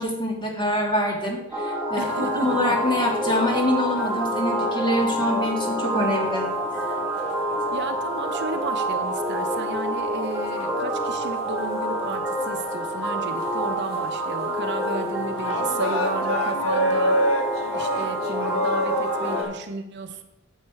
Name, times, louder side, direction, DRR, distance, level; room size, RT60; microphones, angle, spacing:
voice 1, 0.0-6.5, left 1 dB, 20° left, 0 dB, 1.9 m, -25 dB
sound 1, 1.5-19.4, right 1 dB, 5° right, 1.9 m, -27 dB
voice 2, 1.9-2.8 7.7-17.4 17.7-20.2, right 3 dB, 55° right, 6 dB, 0.8 m, -33 dB
sound 2, 2.0-19.5, equal, 70° left, 1.3 m, -31 dB
9.6 x 7.4 x 4.8 m, 0.90 s
head